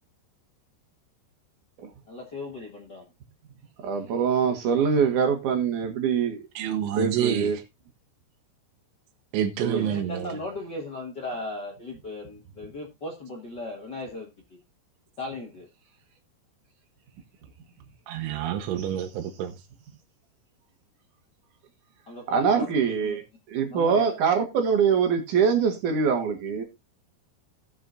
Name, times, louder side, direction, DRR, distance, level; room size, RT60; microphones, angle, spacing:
voice 1, 2.1-3.0 9.7-14.6 15.2-15.7 22.1-23.2 23.7-24.1, left 2 dB, 75° left, 0.9 m, -37 dB
voice 2, 3.8-6.4 7.0-7.6 9.6-9.8 22.3-23.2 23.5-26.6, right 6 dB, 60° right, 2.2 m, -23 dB
voice 3, 6.6-7.5 9.3-10.4 18.1-19.6, right 10 dB, 90° right, 3.3 m, -28 dB
18.0 x 6.3 x 2.6 m
omnidirectional pair, 5.3 m